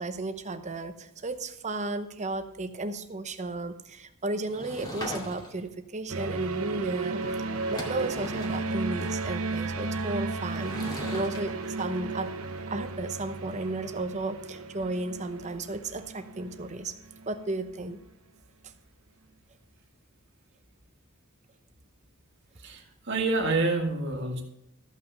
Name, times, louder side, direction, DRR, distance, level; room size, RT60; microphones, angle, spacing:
voice 1, 0.0-7.2 7.7-10.8 11.1-12.3 12.7-16.9 17.3-18.0, right 2 dB, 30° right, 8 dB, 0.8 m, -34 dB
Sliding door / Wood, 4.5-5.7 7.2-7.3 7.6-8.7 10.5-11.4, left 1 dB, 20° left, 2.2 m, -39 dB
sound 1, 6.1-17.5, right 3 dB, 70° right, 0.9 m, -34 dB
voice 2, 22.6-24.4, right 3 dB, 55° right, 0 dB, 1.8 m, -28 dB
14.0 x 5.8 x 5.5 m, 0.81 s
head